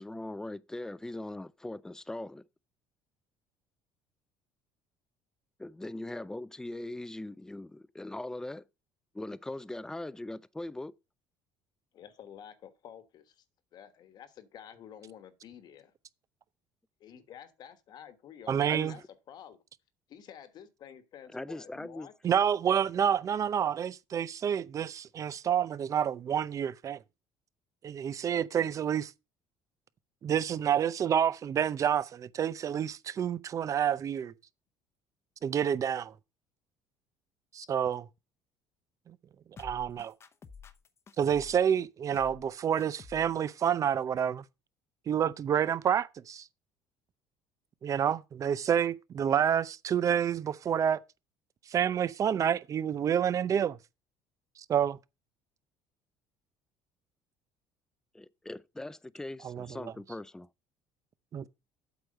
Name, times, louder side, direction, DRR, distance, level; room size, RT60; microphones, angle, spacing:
voice 1, 0.0-2.5 5.6-8.6 9.1-10.9 18.7-18.9 21.3-22.1 58.1-60.5, left 2 dB, 5° left, 0.4 m, -40 dB
voice 2, 11.9-13.4 13.7-15.9 17.0-19.6 20.1-22.1, left 9 dB, 55° left, 1.3 m, -50 dB
voice 3, 18.5-19.0 22.2-27.0 27.8-29.1 30.2-34.3 35.4-36.1 37.5-38.0 39.1-39.2 39.6-40.1 41.2-44.4 45.1-46.4 47.8-51.0 51.7-53.8 54.7-55.0 59.4-59.9 61.3-61.5, right 8 dB, 40° right, 0.6 m, -28 dB
sound 1, 39.6-41.6 42.1-42.5 42.8-43.3 43.6-43.7, left 6 dB, 30° left, 0.8 m, -50 dB
8.1 x 4.8 x 6.3 m
cardioid pair, 110°, 9 cm